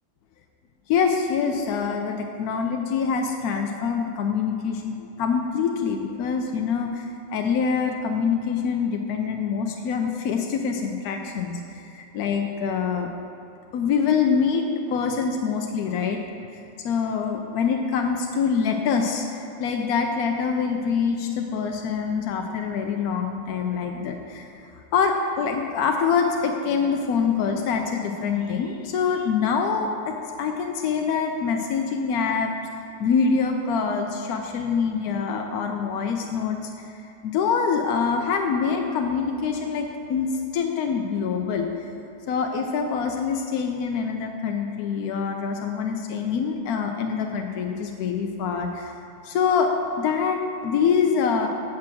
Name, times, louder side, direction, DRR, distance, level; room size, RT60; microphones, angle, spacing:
voice 1, 0.9-13.1 13.7-16.2 16.8-24.7 24.9-32.5 33.0-36.6 36.8-37.0 37.2-41.9 42.3-48.9 49.2-49.7 50.0-51.5, left 6 dB, 75° left, 3 dB, 0.8 m, -25 dB
8.6 x 5.9 x 6.2 m, 2.7 s
omnidirectional pair, 2.2 m